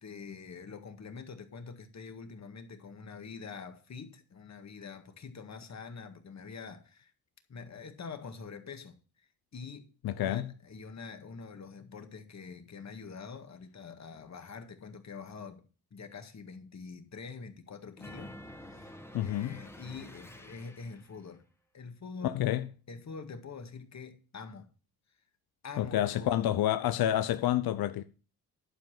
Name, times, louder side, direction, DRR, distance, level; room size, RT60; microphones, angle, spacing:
voice 1, 0.0-7.1 7.5-9.9 10.1-15.7 15.9-18.9 19.2-21.4 21.7-22.5 22.9-24.7 25.6-26.6, left 5 dB, 45° left, 1.9 m, -45 dB
voice 2, 10.0-10.5 19.1-19.6 22.2-22.7 25.8-28.0, left 12 dB, 70° left, 0.7 m, -29 dB
sound 1, 18.0-21.2, left 1 dB, 5° left, 1.4 m, -49 dB
11.0 x 4.7 x 7.5 m
cardioid pair, 70°, 38 cm